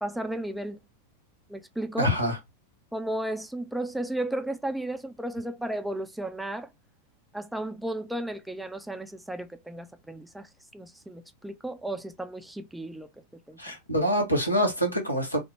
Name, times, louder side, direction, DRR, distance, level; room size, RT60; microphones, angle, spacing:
voice 1, 0.0-0.8 1.5-2.1 2.9-6.7 7.3-13.1 13.5-13.7, right 1 dB, 5° right, 0.4 m, -34 dB
voice 2, 2.0-2.4 13.6-15.4, equal, 85° left, 1.0 m, -25 dB
3.5 x 2.1 x 3.3 m
figure-of-eight pair, 90°, 0 cm